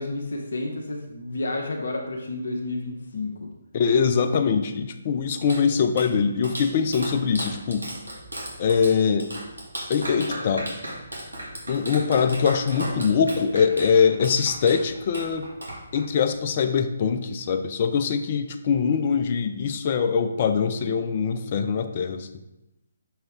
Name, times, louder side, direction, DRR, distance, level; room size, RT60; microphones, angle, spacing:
voice 1, 0.0-3.5, left 2 dB, 55° left, 0 dB, 0.8 m, -31 dB
voice 2, 3.7-7.9 8.6-9.3 9.9-10.7 11.7-15.5 15.9-22.3, left 6 dB, 35° left, 8 dB, 0.5 m, -23 dB
Clapping, 5.1-16.3, right 1 dB, 75° right, 1.8 m, -36 dB
6.4 x 4.3 x 3.5 m, 0.93 s
figure-of-eight pair, 140°, 0 cm